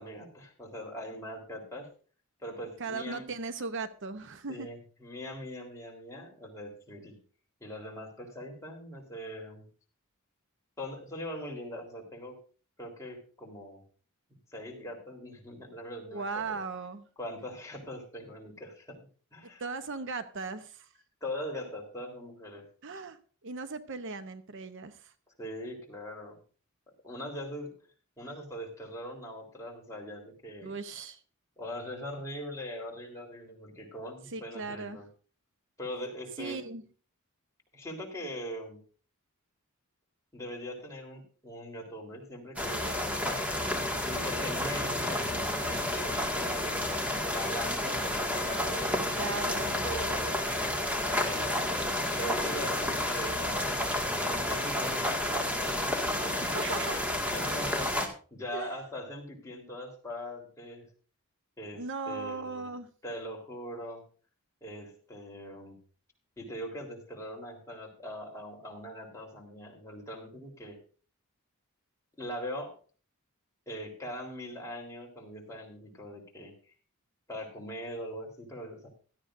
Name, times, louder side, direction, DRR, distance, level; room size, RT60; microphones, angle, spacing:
voice 1, 0.0-1.9 2.4-3.3 4.5-7.2 7.6-9.7 10.8-12.4 12.8-13.8 14.5-16.6 17.2-19.0 19.3-19.6 21.2-22.7 25.4-26.4 27.0-27.7 28.2-30.7 31.6-35.1 35.8-36.6 37.7-38.8 40.3-43.4 44.0-46.8 47.2-50.4 51.1-53.7 54.2-56.9 57.3-58.0 58.3-60.9 61.6-62.7 63.0-64.0 64.6-65.8 66.4-70.8 72.2-72.8 73.7-76.5 77.3-78.9, equal, 15° left, -1 dB, 3.7 m, -41 dB
voice 2, 2.8-4.7 16.1-17.1 19.6-20.9 22.8-23.2 23.4-25.1 30.6-31.2 34.3-35.0 36.4-36.8 49.2-49.7 56.4-57.0 58.5-58.7 61.7-62.9, right 4 dB, 60° right, 11 dB, 0.8 m, -37 dB
sound 1, 42.6-58.1, left 1 dB, 5° right, 1.9 m, -30 dB
16.5 x 12.5 x 2.6 m, 0.39 s
head